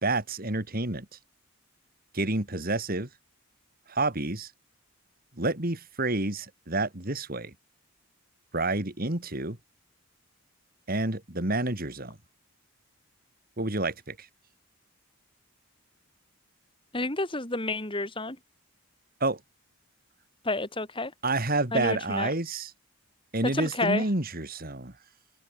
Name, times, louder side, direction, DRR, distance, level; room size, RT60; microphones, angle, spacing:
voice 1, 0.0-1.1 2.1-3.1 3.9-4.5 5.4-7.5 8.5-9.6 10.9-12.2 13.6-14.3 19.2-19.4 21.2-22.7 23.3-24.9, right 2 dB, 40° right, 2.7 m, -29 dB
voice 2, 16.9-18.4 20.4-21.1 21.7-22.3 23.5-24.0, left 2 dB, 25° left, 3.0 m, -30 dB
head